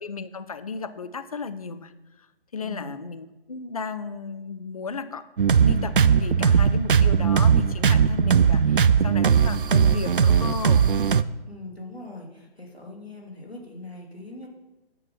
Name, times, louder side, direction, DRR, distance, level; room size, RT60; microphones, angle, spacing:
voice 1, 0.0-1.9 2.2-2.3 2.5-5.3 5.6-10.9, left 4 dB, 40° left, 12 dB, 0.4 m, -35 dB
voice 2, 2.6-3.0 11.5-14.5, left 2 dB, 85° left, -1 dB, 3.0 m, -41 dB
sound 1, 5.4-11.2, right 7 dB, 60° right, 0.4 m, -19 dB
9.2 x 6.1 x 5.5 m, 1.0 s
figure-of-eight pair, 145°, 30 cm